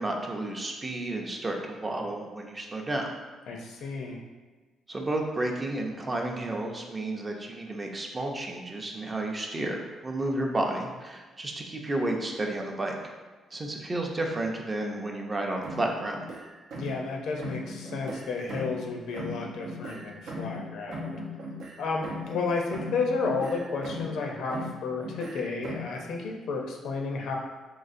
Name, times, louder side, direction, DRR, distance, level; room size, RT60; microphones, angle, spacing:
voice 1, 0.0-3.1 4.9-13.1 13.5-16.2, right 2 dB, 25° right, 1 dB, 0.5 m, -31 dB
voice 2, 3.5-4.2 16.7-21.2 21.8-27.4, left 4 dB, 75° left, 1 dB, 0.5 m, -32 dB
sound 1, 15.6-17.1 17.4-18.9 19.1-22.5 22.7-24.2 24.5-26.0, equal, 75° right, 0.6 m, -38 dB
3.8 x 2.4 x 2.5 m, 1.3 s
cardioid pair, 90°, 0 cm